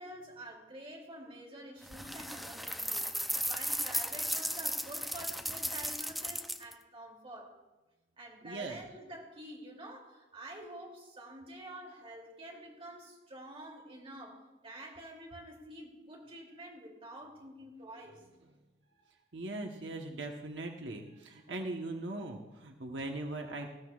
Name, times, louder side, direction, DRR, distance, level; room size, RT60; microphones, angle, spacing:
voice 1, 0.0-3.1 3.4-7.6 8.2-18.2, right 1 dB, 35° right, -1 dB, 2.8 m, -48 dB
sound 1, 1.9-6.7, equal, ahead, 0.5 m, -35 dB
voice 2, 8.4-8.8 19.3-23.7, right 2 dB, 90° right, 2 dB, 1.1 m, -40 dB
20.0 x 14.5 x 2.4 m, 1.1 s
head